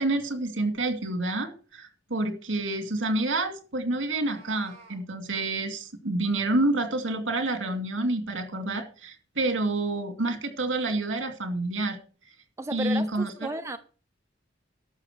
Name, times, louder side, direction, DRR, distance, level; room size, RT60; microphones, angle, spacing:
voice 1, 0.0-12.0 12.7-13.3, right 2 dB, 70° right, 2.6 m, -28 dB
Meow, 4.0-5.0, right 3 dB, 35° right, 4.6 m, -52 dB
voice 2, 12.6-13.8, right 2 dB, 15° right, 0.6 m, -33 dB
12.0 x 6.8 x 6.3 m
head